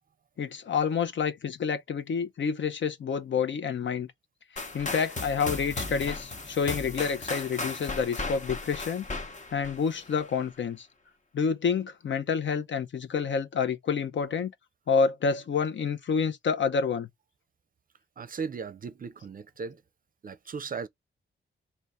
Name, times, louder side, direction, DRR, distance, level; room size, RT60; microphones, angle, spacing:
voice 1, 0.4-4.1 4.7-9.0 9.5-10.9 11.3-14.5 14.9-17.1, left 6 dB, 65° left, 0.7 m, -28 dB
sound 1, 4.6-10.4, left 3 dB, 35° left, 0.9 m, -36 dB
voice 2, 18.2-19.8 20.2-20.9, right 5 dB, 45° right, 0.5 m, -37 dB
3.3 x 2.9 x 4.2 m
cardioid pair, 80°, 21 cm